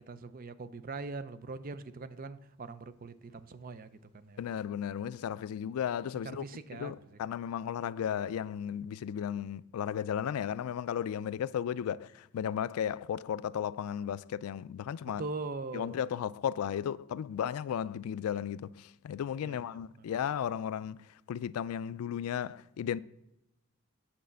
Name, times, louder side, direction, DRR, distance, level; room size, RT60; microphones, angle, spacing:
voice 1, 0.0-4.4 6.2-7.2 15.2-16.0 19.4-19.8, right 3 dB, 40° right, 0.5 m, -42 dB
voice 2, 4.4-6.4 6.7-15.2 15.7-23.0, left 9 dB, 85° left, 0.3 m, -35 dB
8.7 x 4.2 x 6.7 m
head